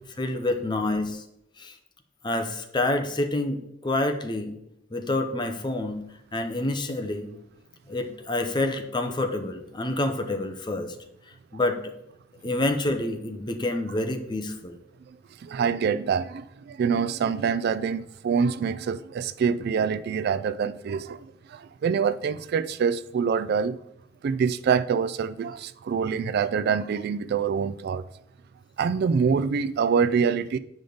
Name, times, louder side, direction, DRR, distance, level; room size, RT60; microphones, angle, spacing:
voice 1, 0.2-1.2 1.6-1.8 2.2-4.5 4.9-6.0 6.3-7.3 7.9-10.9 11.5-11.9 12.4-14.8, left 2 dB, 25° left, 0.7 m, -28 dB
voice 2, 15.4-23.8 24.2-28.0 28.8-30.6, right 6 dB, 55° right, 0.3 m, -25 dB
8.2 x 5.1 x 3.9 m
head